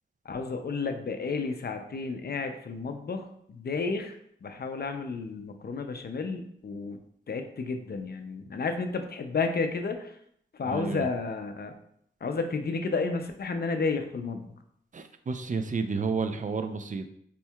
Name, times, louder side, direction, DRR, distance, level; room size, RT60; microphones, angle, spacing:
voice 1, 0.3-7.0 7.3-10.1 10.5-11.7 12.2-14.5, left 4 dB, 50° left, 6 dB, 0.5 m, -32 dB
voice 2, 10.7-11.1 14.9-17.1, right 4 dB, 40° right, 8 dB, 0.4 m, -31 dB
4.3 x 2.6 x 2.3 m, 0.70 s
cardioid pair, 45°, 21 cm